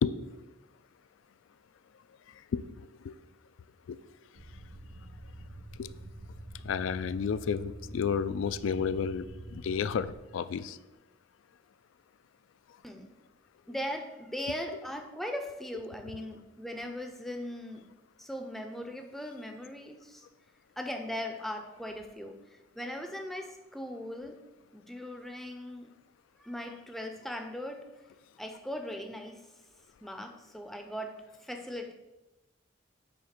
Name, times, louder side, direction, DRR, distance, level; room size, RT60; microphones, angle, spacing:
voice 1, 2.5-3.1 3.9-4.0 5.8-5.9 6.6-10.8, left 6 dB, 90° left, 14 dB, 0.3 m, -31 dB
sound 1, 4.4-10.2, right 1 dB, 55° right, 1.0 m, -46 dB
voice 2, 12.8-13.1 13.7-17.9 18.2-20.3 20.8-24.4 24.7-25.9 26.4-27.9 28.4-29.4 30.0-31.9, left 1 dB, ahead, 4 dB, 0.4 m, -39 dB
7.8 x 3.5 x 5.8 m, 1.0 s
head